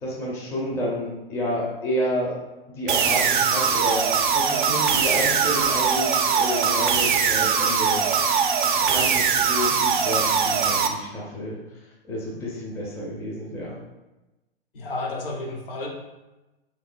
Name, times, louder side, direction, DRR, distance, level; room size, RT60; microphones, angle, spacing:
voice 1, 0.0-2.4 2.7-8.0 8.8-13.7, equal, 10° left, -4 dB, 0.4 m, -30 dB
sound 1, 2.9-10.9, right 6 dB, 55° right, 0.4 m, -21 dB
voice 2, 14.7-15.9, left 2 dB, 60° left, 0 dB, 0.8 m, -31 dB
3.5 x 3.0 x 2.5 m, 1.1 s
figure-of-eight pair, 105°, 31 cm